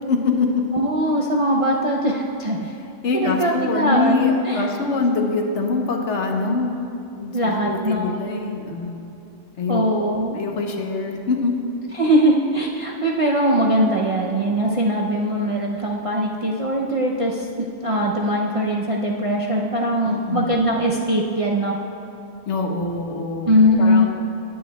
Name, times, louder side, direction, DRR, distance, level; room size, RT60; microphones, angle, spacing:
voice 1, 0.1-0.5 3.0-6.8 7.1-7.3 7.6-9.1 9.6-11.5 20.0-20.5 22.5-24.1, left 4 dB, 70° left, 2 dB, 1.2 m, -24 dB
voice 2, 0.7-2.7 3.2-4.7 7.3-8.2 9.7-10.4 11.9-21.8 23.4-24.0, equal, 45° right, -3 dB, 0.4 m, -21 dB
19.0 x 7.8 x 2.2 m, 2.9 s
omnidirectional pair, 1.3 m